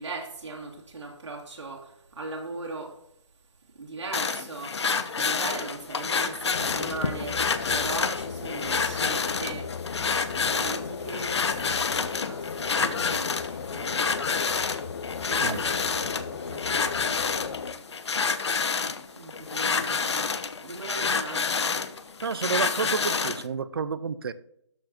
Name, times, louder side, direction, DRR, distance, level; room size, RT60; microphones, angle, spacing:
voice 1, 0.0-3.0 3.7-4.8 5.1-9.8 10.5-14.3 14.7-17.8 19.1-21.8, right 3 dB, 75° right, 2.6 m, -39 dB
sound 1, 4.1-23.5, left 5 dB, 65° left, 0.9 m, -28 dB
sound 2, 6.5-17.7, left 6 dB, 45° left, 0.6 m, -36 dB
voice 2, 22.2-24.3, right 6 dB, 50° right, 0.6 m, -30 dB
13.0 x 4.6 x 4.3 m
hypercardioid pair, 165°, 15 cm